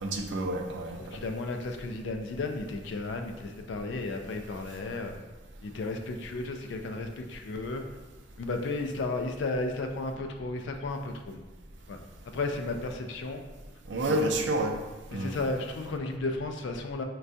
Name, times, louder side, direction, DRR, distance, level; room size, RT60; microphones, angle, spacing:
voice 1, 0.0-1.0 13.9-14.7 15.1-15.4, right 1 dB, 70° right, 3 dB, 0.4 m, -29 dB
voice 2, 1.0-5.2 5.6-7.8 8.4-11.4 11.9-12.0 12.3-13.5 14.0-14.3 15.1-17.0, left 2 dB, 75° left, 5 dB, 0.4 m, -34 dB
4.4 x 2.2 x 2.6 m, 1.2 s
head